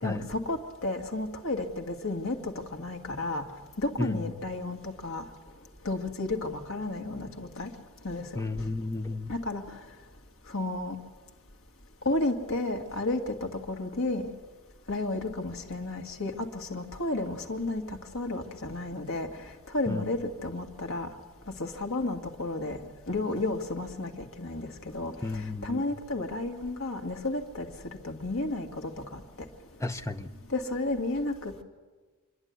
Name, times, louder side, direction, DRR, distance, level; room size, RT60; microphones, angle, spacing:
voice 1, 0.0-3.4 3.8-5.3 5.9-7.7 8.0-8.3 9.3-9.6 10.5-11.0 12.1-14.3 14.9-17.8 18.1-19.3 19.7-21.1 21.6-22.8 23.1-24.1 24.4-27.7 28.0-29.2 30.5-31.6, left 2 dB, 70° left, 3 dB, 2.1 m, -32 dB
voice 2, 8.4-9.3 19.9-20.1 25.2-25.9 29.8-30.3, left 2 dB, 15° left, 8 dB, 0.8 m, -32 dB
27.0 x 11.0 x 9.6 m, 1.4 s
head